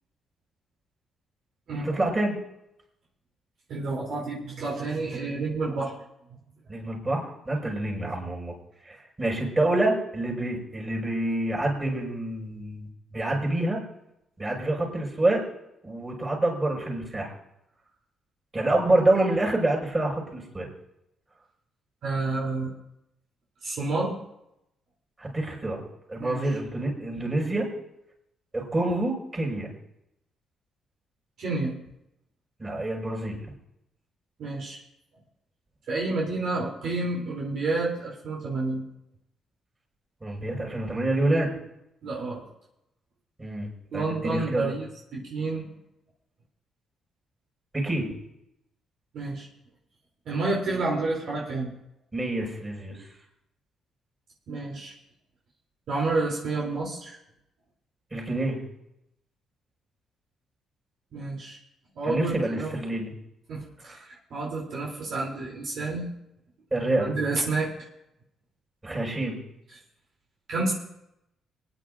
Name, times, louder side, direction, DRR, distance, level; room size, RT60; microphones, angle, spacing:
voice 1, 1.8-2.3 6.7-8.6 8.8-13.8 14.4-15.4 15.8-17.3 18.5-20.7 25.2-27.7 28.5-29.7 32.6-33.4 40.2-41.5 43.4-44.7 47.7-48.1 52.1-53.0 58.1-58.6 62.0-63.1 63.8-64.0 66.7-67.1 68.8-69.4, right 2 dB, 25° right, -2 dB, 5.8 m, -27 dB
voice 2, 3.7-5.9 22.0-22.7 23.6-24.2 26.2-26.4 31.4-31.7 34.4-34.8 35.9-38.8 42.0-42.5 43.9-44.9 45.1-45.7 49.1-49.5 50.2-51.7 54.5-54.9 55.9-57.2 61.1-61.6 61.9-62.7 63.5-66.1 67.1-67.7 70.5-70.7, right 3 dB, 65° right, -3 dB, 3.2 m, -29 dB
26.5 x 10.0 x 2.6 m, 0.83 s
cardioid pair, 90°, 0 cm